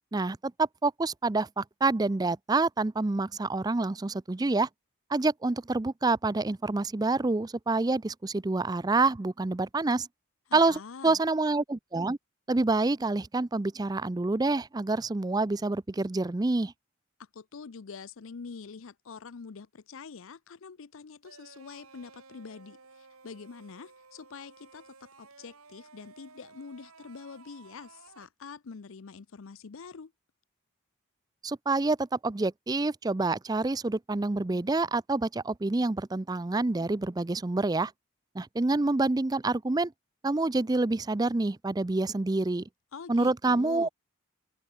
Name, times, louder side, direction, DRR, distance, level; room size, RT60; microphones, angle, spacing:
voice 1, 0.1-4.7 5.1-10.1 10.5-12.2 12.5-16.7 31.4-37.9 38.3-39.9 40.2-42.6 43.1-43.9, right 3 dB, 20° right, 0.4 m, -27 dB
voice 2, 10.5-11.2 17.2-30.1 42.9-43.9, left 5 dB, 70° left, 0.6 m, -45 dB
sound 1, 21.2-28.3, right 4 dB, 85° right, 3.2 m, -55 dB
open air
head